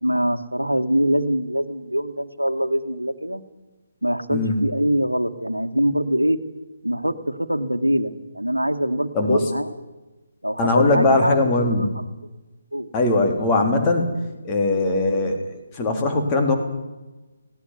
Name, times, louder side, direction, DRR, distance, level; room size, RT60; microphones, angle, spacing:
voice 1, 0.0-3.4 4.0-6.4 6.8-9.7 10.4-12.0 12.7-12.9, equal, 85° right, 7 dB, 1.6 m, -24 dB
voice 2, 10.6-11.9 12.9-14.1 14.4-16.6, left 2 dB, 20° left, 3 dB, 3.7 m, -20 dB
18.5 x 18.0 x 9.7 m, 1.1 s
figure-of-eight pair, 140°, 0 cm